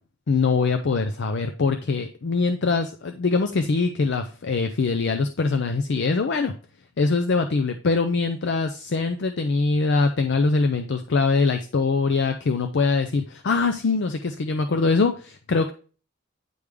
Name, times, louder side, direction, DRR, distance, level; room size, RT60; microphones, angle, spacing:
voice 1, 0.3-6.5 7.0-15.7, left 4 dB, 60° left, 7 dB, 0.5 m, -23 dB
9.3 x 3.3 x 3.5 m, 0.38 s
head